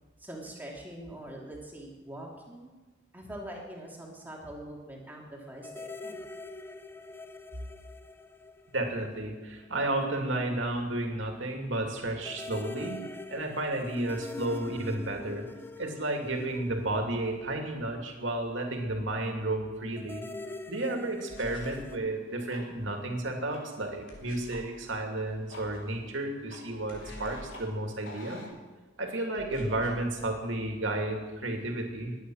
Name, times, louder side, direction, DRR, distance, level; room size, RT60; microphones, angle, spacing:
voice 1, 0.2-2.7 3.1-6.2, right 1 dB, 10° right, -2 dB, 2.9 m, -43 dB
sound 1, 5.6-9.4 9.6-9.7 12.2-17.6 20.0-22.0, left 2 dB, 10° left, 0.5 m, -44 dB
voice 2, 8.7-13.0 13.3-15.5 15.8-20.2 20.7-28.4 29.0-32.2, right 1 dB, 70° right, 3 dB, 2.6 m, -32 dB
sound 2, 21.3-21.9 24.1-24.7 26.9-27.6 29.3-30.1, equal, 65° left, 4.0 m, -46 dB
sound 3, 21.9-28.5, left 2 dB, 80° left, 3.3 m, -51 dB
22.0 x 9.3 x 6.4 m, 1.3 s
head